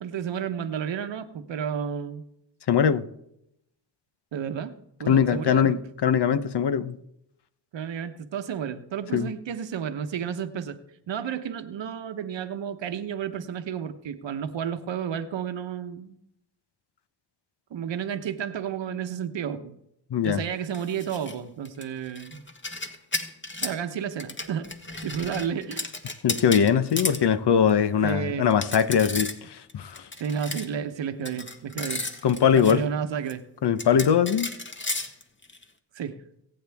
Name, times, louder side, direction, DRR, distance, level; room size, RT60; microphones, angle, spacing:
voice 1, 0.0-2.2 4.3-4.7 5.0-5.8 7.7-10.8 11.1-16.2 17.7-19.8 20.2-22.4 23.6-24.7 25.0-25.9 28.0-28.5 29.1-29.3 30.2-32.0 32.5-33.4 35.9-36.2, right 8 dB, 75° right, 1.1 m, -31 dB
voice 2, 2.7-3.0 5.1-7.0 9.1-9.3 20.1-20.4 26.2-30.1 32.2-32.9 33.6-34.5, left 8 dB, 65° left, 0.9 m, -22 dB
sound 1, 20.7-21.4 21.7-23.8 24.2-27.2 27.7-27.8 28.1-28.2 28.5-29.4 29.7-30.7 31.3-32.7 33.3-33.4 33.8-35.6, left 2 dB, 25° left, 1.5 m, -34 dB
23.5 x 8.7 x 3.5 m
cardioid pair, 65°, 44 cm